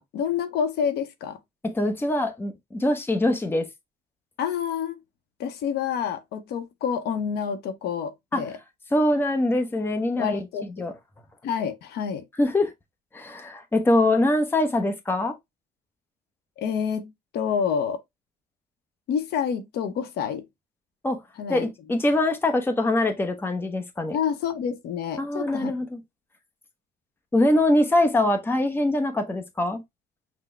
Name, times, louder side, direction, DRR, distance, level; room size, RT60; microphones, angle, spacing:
voice 1, 0.0-1.4 4.4-5.0 5.4-8.6 10.2-10.7 11.4-12.2 16.6-18.0 19.1-20.4 21.4-21.7 24.1-25.7, left 7 dB, 75° left, 0.8 m, -28 dB
voice 2, 1.6-3.7 8.3-8.4 8.9-10.5 10.8-10.9 12.4-12.7 13.1-15.3 21.0-21.2 21.5-24.2 25.2-26.0 27.3-29.8, left 1 dB, 15° left, 0.8 m, -23 dB
6.0 x 2.2 x 3.1 m
cardioid pair, 110°, 17 cm